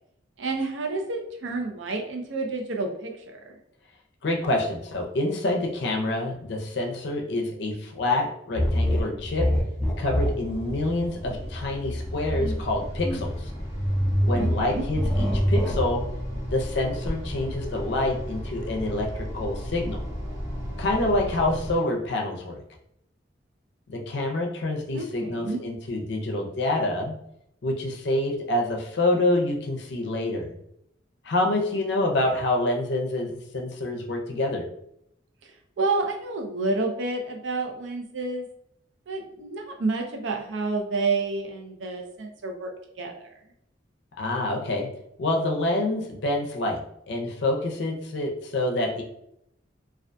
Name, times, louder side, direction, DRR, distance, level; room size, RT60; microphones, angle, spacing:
voice 1, 0.4-3.4 14.4-14.8 24.9-25.6 35.8-38.5 39.1-42.7 43.0-43.3, right 3 dB, 80° right, 3 dB, 0.5 m, -29 dB
voice 2, 4.2-9.5 10.0-13.5 14.2-16.1 16.5-20.0 20.8-22.6 23.9-27.2 27.6-30.5 31.2-34.7 44.2-44.9 45.2-46.8 47.1-49.0, left 2 dB, 65° left, 1 dB, 0.5 m, -27 dB
sound 1, 8.5-21.7, equal, 5° left, 0.4 m, -29 dB
sound 2, 9.6-21.8, equal, 65° right, 1.3 m, -36 dB
2.3 x 2.2 x 2.5 m, 0.75 s
head